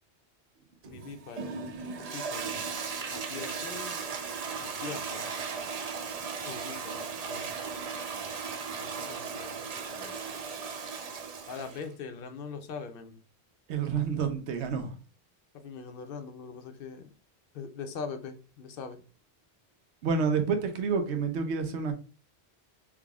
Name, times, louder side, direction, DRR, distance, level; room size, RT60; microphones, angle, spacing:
voice 1, 0.8-1.6 2.1-2.6 3.1-4.0 4.6-5.3 6.4-7.8 8.7-10.2 11.5-13.2 15.5-17.1 17.5-19.0, left 5 dB, 60° left, 0.7 m, -42 dB
Toilet flush, 0.8-11.9, right 5 dB, 50° right, 0.4 m, -37 dB
voice 2, 13.7-15.0 20.0-21.9, right 5 dB, 90° right, 1.0 m, -29 dB
3.5 x 3.2 x 2.3 m
omnidirectional pair, 1.1 m